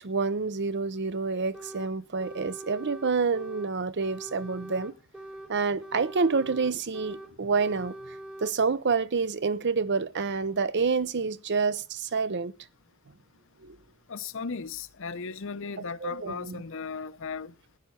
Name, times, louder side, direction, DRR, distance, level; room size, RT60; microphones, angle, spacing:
voice 1, 0.0-4.9 5.5-8.0 8.4-12.5 13.6-13.8 16.0-16.6, right 4 dB, 55° right, 0.7 m, -28 dB
sound 1, 1.5-1.9 2.2-3.7 4.0-5.5 5.8-7.3 7.6-8.5, right 1 dB, 5° right, 1.2 m, -43 dB
voice 2, 14.1-17.5, left 4 dB, 65° left, 0.8 m, -36 dB
15.0 x 10.5 x 4.3 m
head